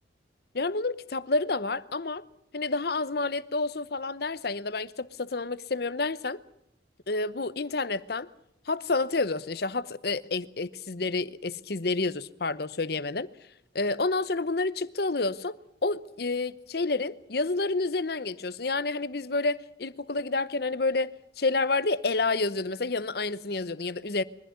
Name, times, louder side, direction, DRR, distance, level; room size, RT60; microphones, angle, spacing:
voice 1, 0.5-2.2 2.5-6.4 7.1-8.3 8.7-13.3 13.7-15.6 15.8-24.2, left 3 dB, 55° left, 0.8 m, -29 dB
23.0 x 15.0 x 9.5 m
head